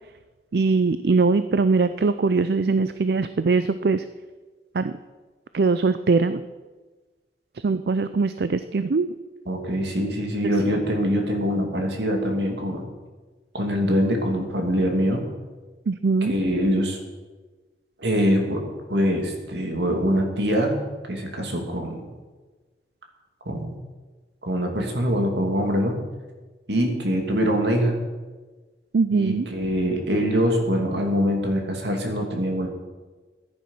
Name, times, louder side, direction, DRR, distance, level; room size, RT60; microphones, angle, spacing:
voice 1, 0.5-4.0 4.7-4.9 5.5-6.4 7.6-9.1 15.9-16.3 28.9-29.5, right 4 dB, 60° right, 12 dB, 0.5 m, -21 dB
voice 2, 9.5-12.8 13.5-15.3 16.2-17.0 18.0-20.8 21.1-22.0 23.4-23.8 24.4-26.0 26.7-28.0 29.1-32.7, equal, 75° right, 2 dB, 2.5 m, -24 dB
14.5 x 10.5 x 5.6 m, 1.3 s
head